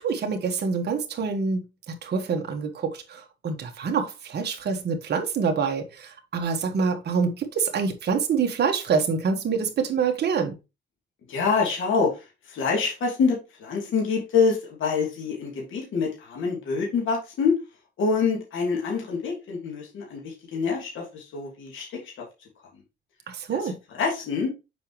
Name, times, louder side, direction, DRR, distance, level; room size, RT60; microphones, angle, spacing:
voice 1, 0.0-1.6 2.0-10.5 23.3-23.7, right 5 dB, 50° right, 1.4 m, -26 dB
voice 2, 11.3-17.5 18.0-22.2 23.5-24.5, left 5 dB, 70° left, 2.8 m, -26 dB
6.8 x 5.1 x 3.0 m
cardioid pair, 110°, 21 cm